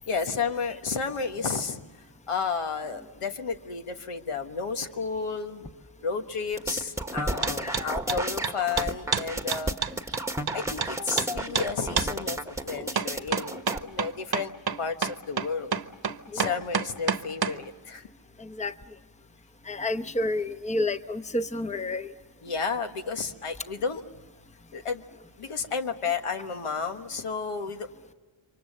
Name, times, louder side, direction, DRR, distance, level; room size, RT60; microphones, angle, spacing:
voice 1, 0.1-1.8 2.3-5.7 6.0-9.8 10.5-14.5 14.8-15.7 16.3-18.1 22.4-24.0 24.7-25.0 25.4-27.9, left 5 dB, 85° left, 6 dB, 1.5 m, -32 dB
sound 1, 6.6-13.8, right 1 dB, 5° right, 1.2 m, -32 dB
sound 2, 7.4-7.8 8.1-10.9 11.2-11.3 11.5-11.7 12.0-12.1 13.0-17.6, right 6 dB, 45° right, 1.0 m, -28 dB
voice 2, 7.6-7.9 16.3-16.6 18.4-18.7 19.7-22.1, left 2 dB, 15° left, 10 dB, 0.9 m, -30 dB
28.5 x 24.5 x 6.7 m, 1.3 s
cardioid pair, 65°, 50 cm